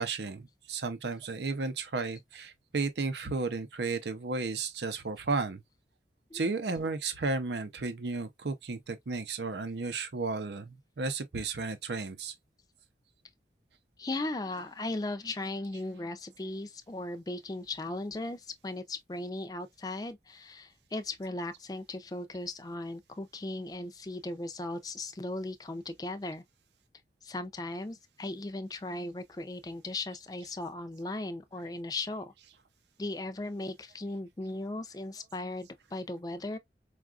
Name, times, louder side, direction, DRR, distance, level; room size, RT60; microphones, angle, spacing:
voice 1, 0.0-5.6 6.3-12.3, right 3 dB, 75° right, 0.6 m, -33 dB
voice 2, 14.0-26.4 27.2-32.3 33.0-36.6, left 2 dB, 20° left, 0.4 m, -37 dB
4.7 x 2.4 x 2.3 m
head